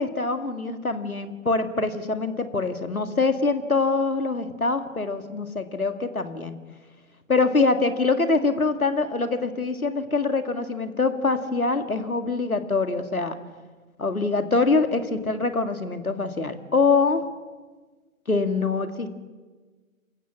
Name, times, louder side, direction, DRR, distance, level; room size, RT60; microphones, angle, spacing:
voice 1, 0.0-6.6 7.3-13.4 14.0-17.3 18.3-19.1, left 3 dB, 90° left, 9 dB, 2.2 m, -24 dB
27.5 x 15.5 x 7.4 m, 1.4 s
figure-of-eight pair, 135°, 42 cm